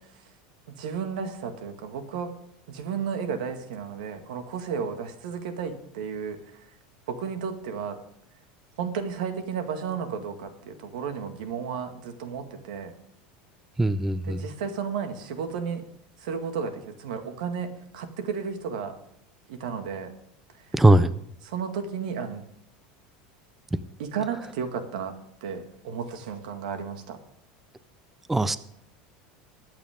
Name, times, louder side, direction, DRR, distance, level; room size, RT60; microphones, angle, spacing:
voice 1, 0.7-2.3 2.7-6.7 7.1-8.0 8.8-12.9 14.2-15.8 16.2-19.0 19.5-20.1 21.4-22.5 24.0-27.2, right 6 dB, 85° right, 7 dB, 2.0 m, -33 dB
voice 2, 13.8-14.4 20.7-21.1 28.3-28.6, right 2 dB, 5° right, 14 dB, 0.3 m, -19 dB
21.5 x 8.6 x 3.7 m, 0.75 s
supercardioid pair, 170°, 4 cm